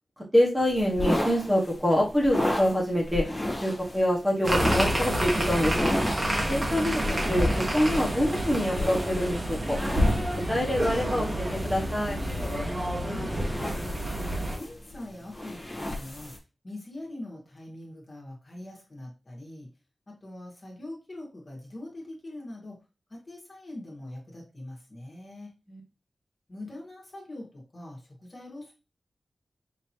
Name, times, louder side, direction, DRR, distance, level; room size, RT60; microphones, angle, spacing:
voice 1, 0.3-3.2 3.6-5.8 6.5-9.8 10.5-12.2 25.7-25.8, equal, 10° right, -3 dB, 1.3 m, -25 dB
sound 1, 0.6-16.4, left 1 dB, 15° left, 1.1 m, -34 dB
sound 2, 4.4-14.6, equal, 30° right, 1.1 m, -28 dB
voice 2, 12.8-13.4 13.8-16.3 16.6-19.7 20.1-22.8 23.1-25.5 26.5-28.7, left 1 dB, 35° left, -2 dB, 1.6 m, -42 dB
5.1 x 3.0 x 2.9 m, 0.30 s
wide cardioid pair, 125°, 0 cm